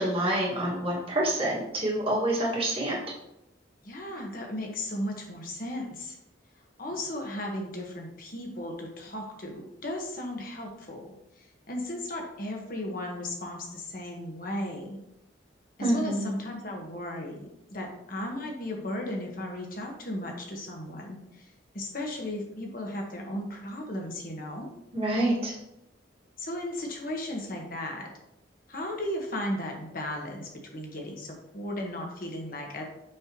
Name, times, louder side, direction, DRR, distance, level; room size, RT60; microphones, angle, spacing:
voice 1, 0.0-3.0 15.8-16.3 24.9-25.5, right 1 dB, 30° right, -4 dB, 1.8 m, -27 dB
voice 2, 3.8-6.2 6.8-11.1 11.3-15.0 15.8-21.5 21.7-24.7 26.4-28.1 28.7-32.8, left 1 dB, 50° left, 1 dB, 1.3 m, -35 dB
6.5 x 5.5 x 3.0 m, 0.83 s
head